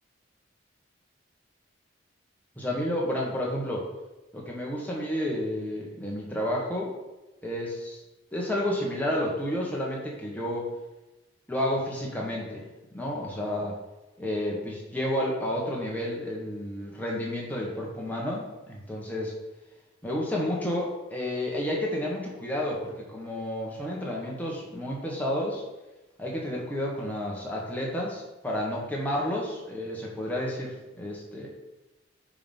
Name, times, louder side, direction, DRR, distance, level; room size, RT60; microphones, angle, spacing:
voice 1, 2.6-3.9 4.3-6.9 7.4-8.0 8.3-10.7 11.5-12.7 12.9-13.8 14.2-19.3 20.0-25.6 26.2-31.5, left 1 dB, 10° left, -3 dB, 1.6 m, -31 dB
9.7 x 3.9 x 5.5 m, 1.1 s
head